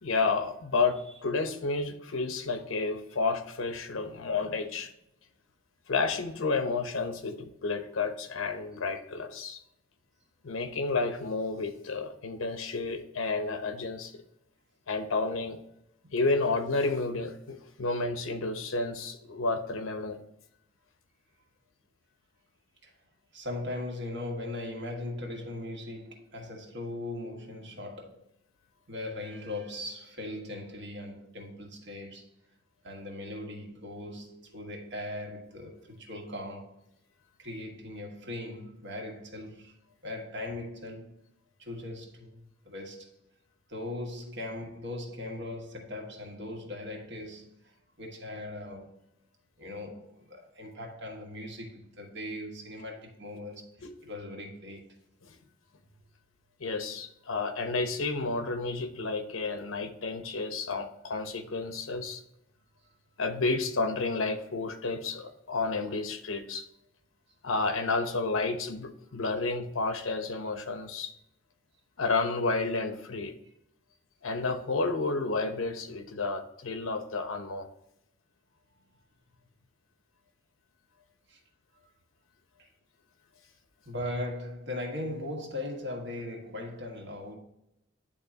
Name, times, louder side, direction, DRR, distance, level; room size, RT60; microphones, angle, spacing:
voice 1, 0.0-4.9 5.9-9.6 10.4-14.1 14.9-15.6 16.1-20.2 53.8-53.9 55.2-55.4 56.6-62.2 63.2-66.7 67.4-71.1 72.0-73.3 74.2-77.7, left 3 dB, 90° left, 0.9 m, -31 dB
voice 2, 3.9-4.8 16.4-16.6 22.8-22.9 23.3-28.3 28.9-32.3 32.8-36.8 37.4-39.7 40.0-41.2 41.6-43.1 43.7-49.0 49.6-53.7 54.0-55.0 81.3-81.4 82.6-82.7 83.8-87.4, left 1 dB, 60° right, 1.6 m, -39 dB
10.5 x 3.7 x 2.8 m
head